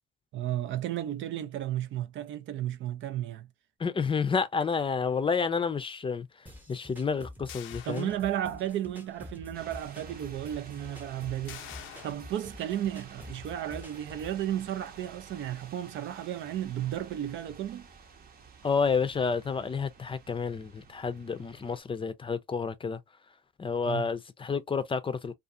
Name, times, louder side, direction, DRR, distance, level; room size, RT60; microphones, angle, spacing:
voice 1, 0.3-3.5 7.8-11.6 12.0-17.9 23.9-24.0, right 12 dB, 75° right, 0.5 m, -33 dB
voice 2, 3.8-6.3 6.7-8.1 18.6-23.0 23.6-25.3, left 5 dB, 25° left, 0.5 m, -30 dB
sound 1, 6.5-14.4, left 1 dB, 10° right, 0.8 m, -48 dB
sound 2, 7.5-8.8 9.2-9.3 11.5-12.1, left 12 dB, 90° left, 0.4 m, -46 dB
sound 3, 9.5-21.8, right 5 dB, 50° right, 0.8 m, -51 dB
2.4 x 2.4 x 2.6 m
cardioid pair, 90°, 20 cm